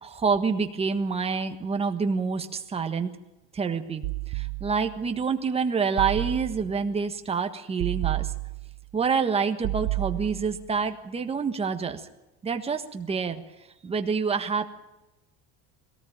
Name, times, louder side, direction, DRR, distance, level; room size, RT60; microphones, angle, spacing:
voice 1, 0.0-3.2 3.5-8.3 8.9-12.0 12.4-13.4 13.8-14.8, right 5 dB, 15° right, 6 dB, 1.5 m, -27 dB
sound 1, 4.0-5.1 6.0-6.9 7.8-8.9 9.6-10.7, right 25 dB, 55° right, 0.7 m, -31 dB
22.0 x 18.0 x 8.9 m, 0.99 s
cardioid pair, 170°, 38 cm